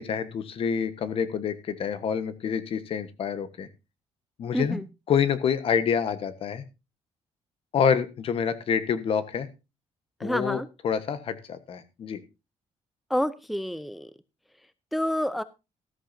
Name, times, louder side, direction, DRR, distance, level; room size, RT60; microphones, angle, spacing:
voice 1, 0.0-3.7 4.4-4.8 5.1-6.6 7.7-9.5 10.2-12.2, left 7 dB, 55° left, 12 dB, 1.3 m, -27 dB
voice 2, 4.5-4.8 10.2-10.7 13.1-14.1 14.9-15.4, equal, ahead, 15 dB, 0.5 m, -28 dB
14.0 x 13.0 x 2.7 m, 0.27 s
cardioid pair, 130°, 12 cm